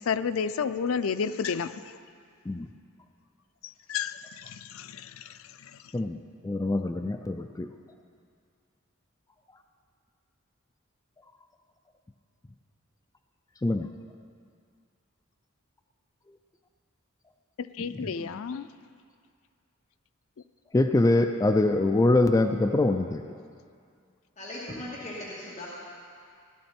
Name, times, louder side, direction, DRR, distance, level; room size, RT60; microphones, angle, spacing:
voice 1, 0.0-2.0 3.6-5.8 17.6-18.7, left 6 dB, 90° left, 12 dB, 0.4 m, -32 dB
voice 2, 6.4-7.7 13.6-13.9 17.8-18.3 20.7-23.4, left 2 dB, 15° left, 5 dB, 0.3 m, -24 dB
voice 3, 24.4-25.7, left 1 dB, 35° left, -8 dB, 2.3 m, -38 dB
16.5 x 11.5 x 4.4 m, 2.3 s
head